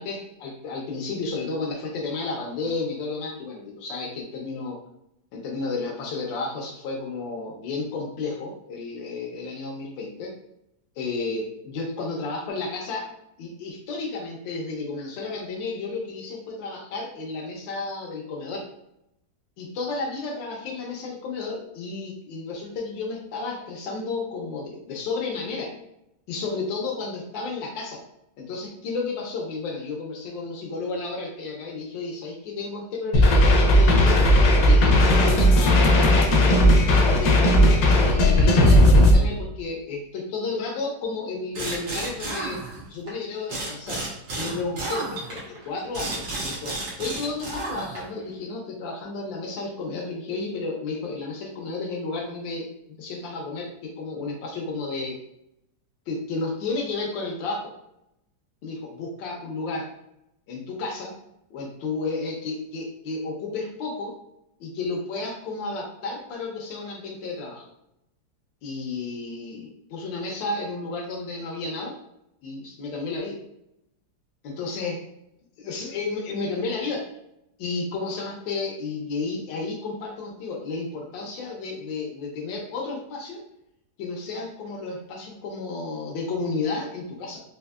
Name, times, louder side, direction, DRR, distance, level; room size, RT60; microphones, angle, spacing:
voice 1, 0.0-4.8 5.3-10.3 11.0-13.1 13.4-18.6 19.6-25.7 26.3-28.0 28.4-34.2 34.6-42.6 42.9-44.0 44.4-52.7 53.0-55.2 56.1-57.7 58.6-59.9 60.5-61.2 61.5-64.2 64.6-67.7 68.6-72.0 72.4-73.4 74.4-75.0 75.6-77.1 77.6-83.4 84.0-87.4, left 3 dB, 85° left, -1 dB, 1.4 m, -32 dB
sound 1, 33.1-39.1, left 1 dB, 65° left, 1.0 m, -16 dB
sound 2, 41.5-43.1 43.5-48.2, right 2 dB, 90° right, 1.8 m, -32 dB
4.4 x 2.8 x 2.3 m, 0.82 s
omnidirectional pair, 2.0 m